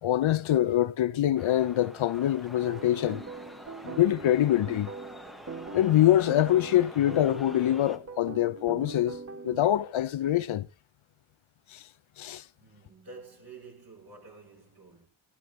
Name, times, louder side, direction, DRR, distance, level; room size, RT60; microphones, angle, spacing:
voice 1, 0.0-3.2 3.8-4.9 5.7-9.2 9.4-10.7 11.7-11.9 12.2-12.4, left 12 dB, 70° left, 0.7 m, -24 dB
sound 1, 1.4-8.0, equal, ahead, 1.3 m, -47 dB
sound 2, 2.6-9.7, right 4 dB, 30° right, 1.2 m, -42 dB
voice 2, 12.6-15.1, right 4 dB, 45° right, 6.4 m, -49 dB
15.5 x 14.5 x 3.2 m
cardioid pair, 70°, 50 cm